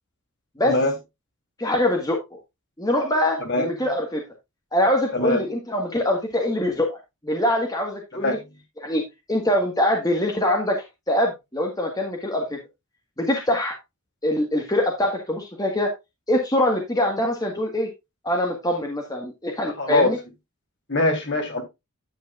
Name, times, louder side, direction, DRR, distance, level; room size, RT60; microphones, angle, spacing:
voice 1, 0.6-0.9 3.4-3.7 5.1-5.4 8.1-8.4 19.8-20.1 20.9-21.6, left 2 dB, 50° left, 3.2 m, -22 dB
voice 2, 1.6-2.4 2.8-4.2 4.7-7.0 7.2-8.4 8.8-9.0 9.3-10.8 11.1-12.6 13.2-13.7 14.2-15.9 16.3-17.9 18.2-20.2, left 1 dB, 15° left, 1.5 m, -23 dB
10.5 x 8.2 x 2.4 m
head